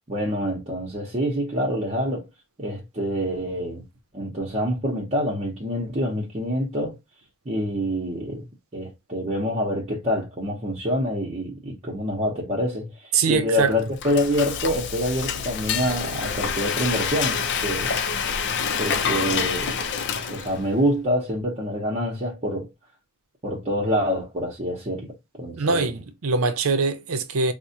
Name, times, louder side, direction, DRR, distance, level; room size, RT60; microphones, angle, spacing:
voice 1, 0.1-2.3 2.6-3.8 4.1-7.0 7.5-8.5 8.7-18.0 18.8-19.8 20.3-22.7 23.4-25.1 25.4-25.9, equal, 30° right, 0.8 m, -26 dB
voice 2, 13.1-13.7 25.5-27.5, right 4 dB, 80° right, 0.6 m, -23 dB
Frying (food), 13.7-20.7, left 6 dB, 55° left, 0.5 m, -27 dB
4.6 x 2.1 x 2.7 m
head